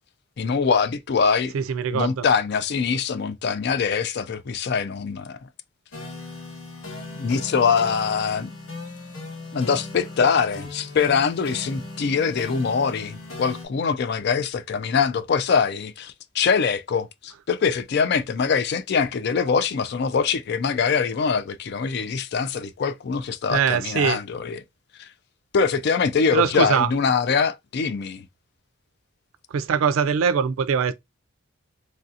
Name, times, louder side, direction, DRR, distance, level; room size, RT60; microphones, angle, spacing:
voice 1, 0.4-1.5 1.9-5.4 7.1-8.5 9.5-24.6 25.0-25.1 25.5-28.3, left 5 dB, 50° left, 0.3 m, -23 dB
voice 2, 1.5-2.3 23.5-24.2 26.3-26.9 29.5-30.9, right 6 dB, 80° right, 0.4 m, -22 dB
sound 1, 5.9-13.7, left 2 dB, 90° left, 1.8 m, -37 dB
3.2 x 2.6 x 2.4 m
head